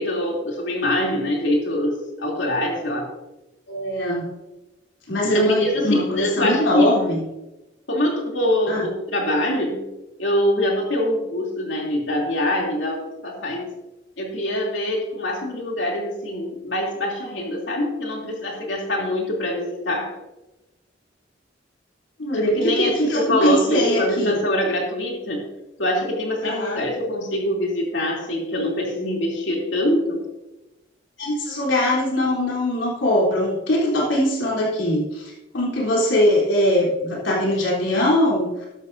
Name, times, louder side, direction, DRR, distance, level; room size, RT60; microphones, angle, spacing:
voice 1, 0.0-3.1 5.2-7.0 7.9-9.8 10.2-13.7 14.2-20.1 22.3-25.4 25.8-30.2, left 1 dB, 75° left, 0 dB, 3.1 m, -24 dB
voice 2, 3.7-4.3 5.1-7.3 8.7-8.9 22.2-24.4 26.4-26.8 31.2-38.7, left 1 dB, 90° left, -5 dB, 3.6 m, -21 dB
13.5 x 11.5 x 2.7 m, 1.0 s
head